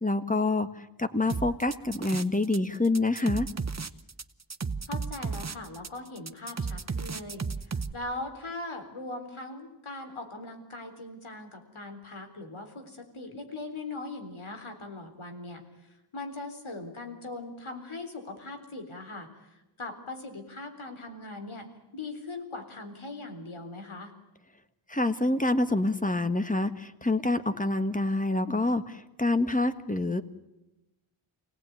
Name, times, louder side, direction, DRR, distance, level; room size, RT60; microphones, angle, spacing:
voice 1, 0.0-3.5 24.9-30.2, left 2 dB, 15° left, 9 dB, 1.5 m, -27 dB
sound 1, 1.3-2.6 2.8-7.9, right 4 dB, 35° right, 0.9 m, -33 dB
voice 2, 4.9-21.7 21.9-24.1, left 2 dB, 80° left, 5 dB, 3.9 m, -40 dB
27.0 x 18.0 x 9.4 m, 0.99 s
wide cardioid pair, 75°, 48 cm